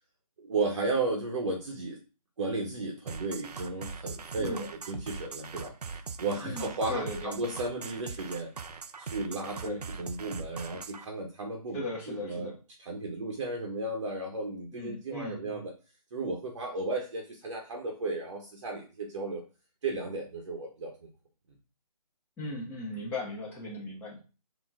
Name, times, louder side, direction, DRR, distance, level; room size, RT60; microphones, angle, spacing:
voice 1, 0.4-2.0 2.4-8.5 9.0-11.8 12.1-12.5 12.8-15.7 16.1-19.4 19.8-21.1, right 3 dB, 45° right, 0 dB, 1.1 m, -34 dB
sound 1, 3.1-11.1, right 5 dB, 80° right, 0.6 m, -41 dB
voice 2, 4.4-4.7 6.4-7.3 9.6-9.8 11.7-12.5 14.7-15.6 22.4-24.2, left 2 dB, 10° left, -5 dB, 1.3 m, -37 dB
4.3 x 2.9 x 3.7 m, 0.33 s
figure-of-eight pair, 155°, 20 cm